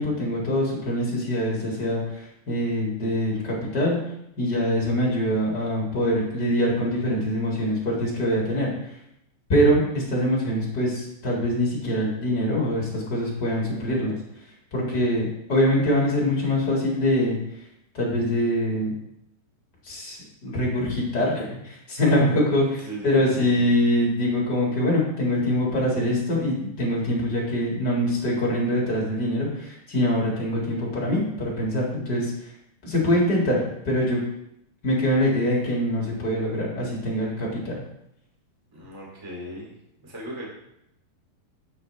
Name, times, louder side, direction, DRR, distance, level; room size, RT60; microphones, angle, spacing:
voice 1, 0.0-2.0 2.5-4.0 4.4-8.7 9.5-14.2 14.7-17.4 17.9-18.9 19.8-32.3 32.8-34.2 34.8-37.8, equal, 45° left, -4 dB, 1.3 m, -24 dB
voice 2, 22.8-23.5 38.7-39.7 40.0-40.4, right 1 dB, 10° right, -3 dB, 1.4 m, -38 dB
8.9 x 8.0 x 3.3 m, 0.80 s
omnidirectional pair, 5.1 m